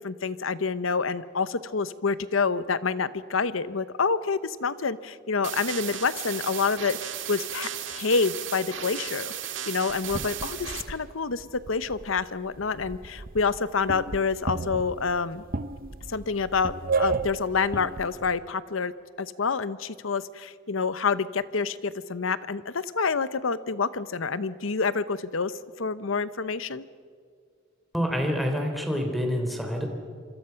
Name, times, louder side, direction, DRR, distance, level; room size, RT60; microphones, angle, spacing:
voice 1, 0.0-9.3 9.7-15.4 16.1-18.9 19.2-25.5 25.8-26.8, left 5 dB, 85° left, 15 dB, 0.9 m, -28 dB
sound 1, 5.4-10.8, right 10 dB, 70° right, 1.8 m, -35 dB
sound 2, 9.9-12.2 12.5-18.4, right 4 dB, 45° right, 0.8 m, -33 dB
voice 2, 27.9-29.9, equal, ahead, 3 dB, 3.4 m, -27 dB
27.0 x 25.0 x 5.8 m, 2.1 s
head